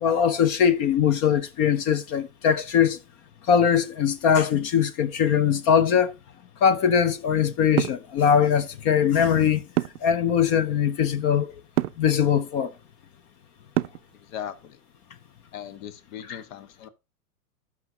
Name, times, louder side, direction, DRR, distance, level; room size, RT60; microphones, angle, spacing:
voice 1, 0.0-3.0 3.5-6.1 6.6-9.6 10.0-11.5 12.0-12.7 16.3-16.4, left 8 dB, 30° left, 0.5 m, -21 dB
sound 1, 7.8-8.1 9.8-10.1 11.8-12.1 13.8-14.1, right 16 dB, 85° right, 0.6 m, -25 dB
voice 2, 14.1-14.8 15.5-16.9, left 9 dB, 60° left, 1.3 m, -38 dB
16.0 x 5.9 x 2.7 m
hypercardioid pair, 135°, 45 cm